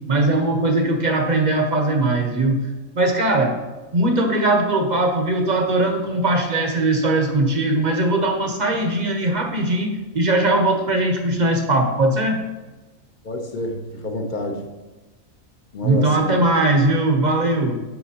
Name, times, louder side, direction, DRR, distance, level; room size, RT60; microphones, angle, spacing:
voice 1, 0.1-2.6 2.9-3.6 3.9-12.4 15.8-17.8, right 2 dB, 40° right, 4 dB, 0.7 m, -20 dB
voice 2, 13.2-14.7 15.7-16.4, left 1 dB, 45° left, 3 dB, 0.7 m, -28 dB
8.7 x 5.9 x 2.8 m, 1.2 s
omnidirectional pair, 1.4 m